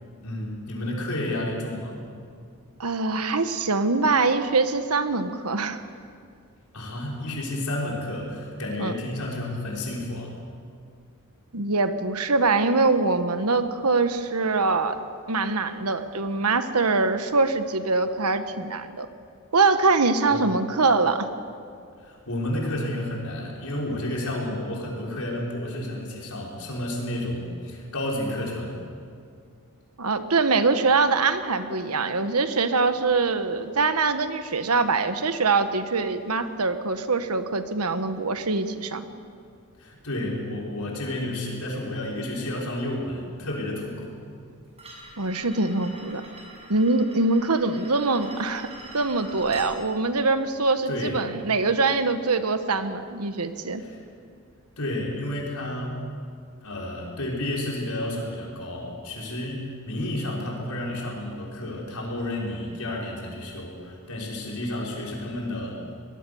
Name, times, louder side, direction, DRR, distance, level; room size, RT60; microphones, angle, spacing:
voice 1, 0.2-2.0 6.7-10.4 20.3-20.5 22.0-28.8 39.8-44.2 49.5-49.7 50.9-51.2 53.8-54.0 54.8-56.0 56.6-65.8, left 1 dB, 75° left, -3 dB, 5.7 m, -31 dB
voice 2, 2.8-5.8 8.8-8.9 11.5-15.0 15.3-19.1 19.5-21.3 30.0-39.0 45.2-46.2 46.7-48.7 48.9-53.8, right 3 dB, 80° right, 9 dB, 1.3 m, -23 dB
sound 1, 44.8-49.7, right 1 dB, 30° right, 6.3 m, -44 dB
23.5 x 20.0 x 7.1 m, 2.3 s
head